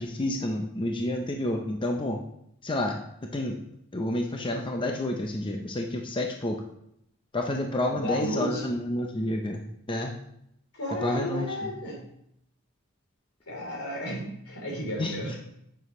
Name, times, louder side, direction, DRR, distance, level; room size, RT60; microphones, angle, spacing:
voice 1, 0.0-2.2 2.6-3.0 3.3-3.6 3.9-6.6 7.3-9.6 9.9-10.1 11.0-11.7 15.0-15.2, left 1 dB, 20° left, 2 dB, 0.6 m, -29 dB
voice 2, 8.0-8.6 10.7-12.0 13.5-15.4, equal, 80° left, -3 dB, 3.4 m, -33 dB
9.4 x 6.2 x 3.1 m, 0.75 s
head